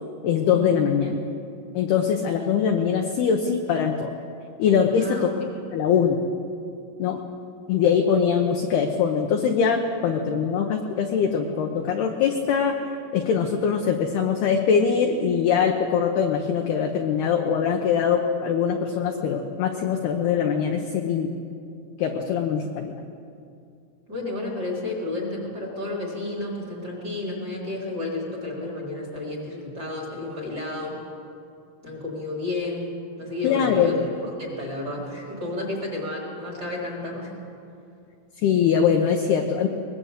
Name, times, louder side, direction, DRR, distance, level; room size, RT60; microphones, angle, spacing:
voice 1, 0.2-1.2 1.7-4.1 4.6-5.3 5.7-6.2 7.0-7.2 7.7-12.8 13.1-21.3 22.0-22.9 33.4-34.0 38.4-39.7, left 7 dB, 75° left, 3 dB, 2.5 m, -22 dB
voice 2, 24.1-31.0 31.8-32.9 33.2-34.0 34.4-37.3, left 2 dB, 20° right, -2 dB, 3.9 m, -31 dB
22.0 x 21.5 x 8.1 m, 2.5 s
omnidirectional pair, 6.0 m